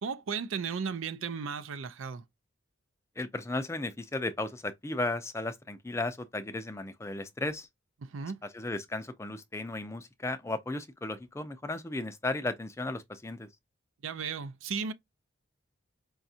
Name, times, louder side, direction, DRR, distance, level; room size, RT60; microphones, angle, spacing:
voice 1, 0.0-2.2 8.0-8.4 14.0-14.9, right 6 dB, 75° right, 0.5 m, -35 dB
voice 2, 3.2-7.7 8.5-13.5, left 2 dB, 15° left, 0.3 m, -35 dB
5.0 x 2.3 x 2.7 m
head